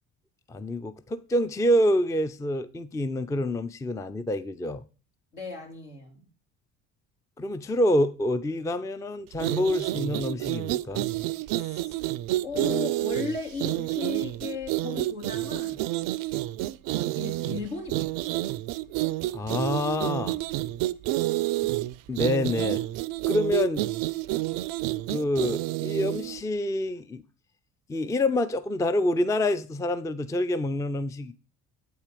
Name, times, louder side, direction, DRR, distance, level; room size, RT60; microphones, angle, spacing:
voice 1, 0.5-4.8 7.4-11.0 19.3-20.4 22.1-22.8 23.3-23.9 25.1-27.2 27.9-31.3, left 1 dB, 10° left, 0.4 m, -27 dB
voice 2, 5.3-6.3 11.5-11.9 12.4-15.8 17.2-18.1, left 4 dB, 75° left, 3.0 m, -36 dB
sound 1, 9.3-26.4, right 16 dB, 60° right, 0.5 m, -29 dB
8.5 x 4.3 x 5.1 m
hypercardioid pair, 55°, 39 cm